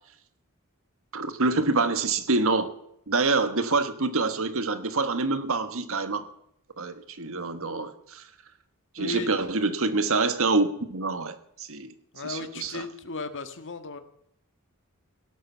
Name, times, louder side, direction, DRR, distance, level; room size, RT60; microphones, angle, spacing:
voice 1, 1.1-2.7 3.1-6.3 6.8-8.2 8.9-11.9 12.2-12.8, right 3 dB, 65° right, 1.5 m, -26 dB
voice 2, 9.0-9.3 12.1-14.0, left 3 dB, 60° left, 1.8 m, -35 dB
17.0 x 11.5 x 7.2 m
head